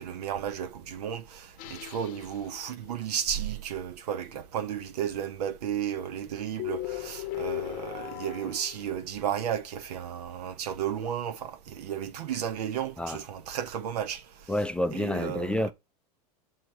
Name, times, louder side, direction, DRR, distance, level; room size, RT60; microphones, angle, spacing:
voice 1, 0.0-14.2 14.9-15.5, right 9 dB, 80° right, 1.1 m, -33 dB
sound 1, 1.6-2.9 6.6-9.3, left 16 dB, 45° left, 0.8 m, -37 dB
voice 2, 14.5-15.7, left 1 dB, 5° left, 0.4 m, -29 dB
6.2 x 4.6 x 4.7 m
supercardioid pair, 120°, 20 cm